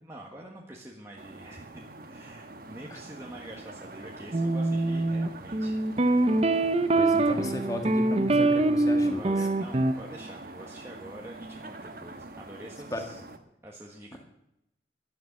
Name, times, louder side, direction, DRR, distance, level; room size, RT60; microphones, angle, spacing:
voice 1, 0.0-5.7 9.1-13.2 13.6-14.2, right 1 dB, 15° right, -2 dB, 1.4 m, -46 dB
sound 1, 1.2-13.4, right 2 dB, 55° right, 1.2 m, -45 dB
sound 2, 4.3-9.9, right 2 dB, 35° right, 0.7 m, -24 dB
voice 2, 6.9-9.4 12.9-13.0 14.1-14.2, left 1 dB, 20° left, 4 dB, 1.8 m, -34 dB
12.5 x 10.5 x 7.4 m, 0.84 s
head